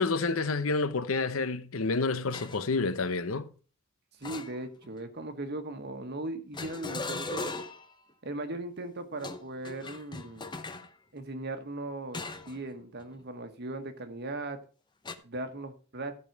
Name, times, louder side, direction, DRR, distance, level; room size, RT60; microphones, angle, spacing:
voice 1, 0.0-3.5, left 3 dB, 75° left, 0.8 m, -29 dB
sound 1, 2.3-2.7 4.2-5.0 6.5-7.9 9.1-10.9 12.1-12.6 13.0-13.2 15.1-15.2, left 3 dB, 20° left, 0.7 m, -39 dB
voice 2, 4.2-7.5 8.2-10.5 11.1-14.6 15.2-16.2, right 2 dB, 55° right, 1.3 m, -38 dB
13.5 x 5.4 x 4.6 m
head